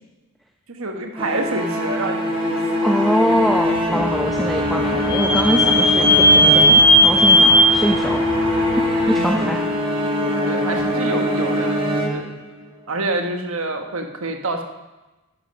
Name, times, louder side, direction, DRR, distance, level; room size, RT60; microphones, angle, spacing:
voice 1, 0.7-2.6 2.8-2.9 9.1-9.3 10.2-12.3 12.9-14.6, right 2 dB, 65° right, 4 dB, 1.3 m, -27 dB
sound 1, 1.2-12.7, equal, 25° right, 1.5 m, -22 dB
voice 2, 2.8-8.2 8.9-9.6 10.7-10.8, equal, ahead, 1 dB, 0.7 m, -23 dB
Vehicle / Squeak, 3.7-9.3, equal, 20° left, 1.5 m, -17 dB
11.0 x 10.0 x 5.2 m, 1.1 s
head